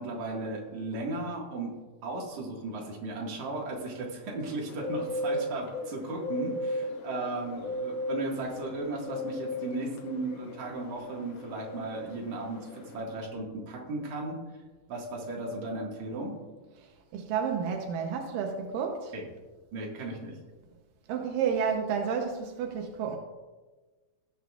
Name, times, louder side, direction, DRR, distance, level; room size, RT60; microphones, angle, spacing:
voice 1, 0.0-1.7 2.0-14.4 14.9-16.4 19.1-19.2 19.7-20.3, right 2 dB, 65° right, -2 dB, 3.1 m, -36 dB
Bird, 4.7-13.0, left 1 dB, 75° left, 1.1 m, -36 dB
voice 2, 16.8-19.1 21.1-23.2, right 6 dB, 90° right, 2 dB, 2.6 m, -31 dB
18.0 x 7.7 x 2.4 m, 1.3 s
omnidirectional pair, 3.8 m